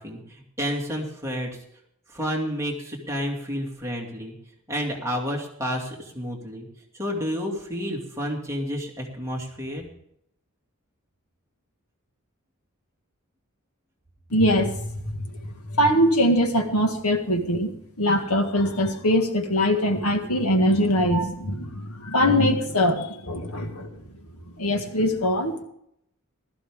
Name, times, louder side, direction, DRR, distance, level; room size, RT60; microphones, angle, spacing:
voice 1, 0.0-1.5 2.1-4.3 4.7-6.7 6.9-9.9, equal, 15° right, -1 dB, 2.5 m, -30 dB
voice 2, 14.3-15.2 15.7-17.7 18.0-23.9 24.6-25.6, equal, 90° left, 5 dB, 1.9 m, -22 dB
16.0 x 13.5 x 3.7 m, 0.74 s
head